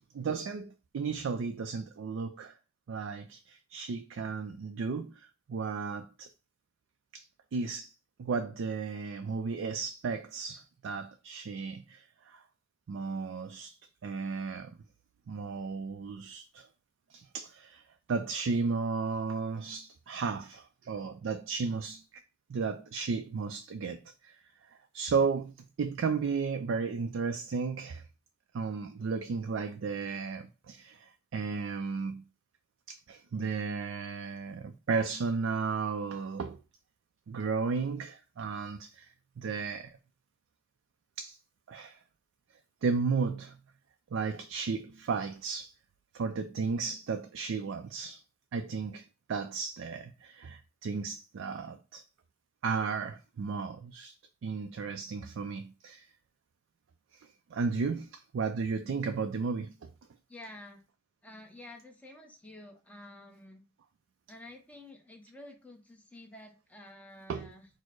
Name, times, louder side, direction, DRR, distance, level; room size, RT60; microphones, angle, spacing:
voice 1, 0.1-2.5 2.9-6.3 7.1-7.3 7.5-7.9 8.2-12.4 12.9-13.8 14.0-14.7 15.3-16.7 17.1-17.8 18.1-22.0 22.5-24.4 24.9-28.0 28.5-32.2 32.9-36.6 37.3-39.1 39.4-39.9 41.2-41.4 41.7-42.0 42.8-43.6 44.1-45.7 46.1-48.2 48.5-49.0 49.3-52.0 52.6-54.1 54.4-56.1 57.5-59.9 67.3-67.5, right 5 dB, 80° right, 0.4 m, -34 dB
voice 2, 60.3-60.8 61.2-63.6 64.3-67.7, left 1 dB, 5° left, 0.8 m, -50 dB
4.3 x 2.0 x 4.5 m
head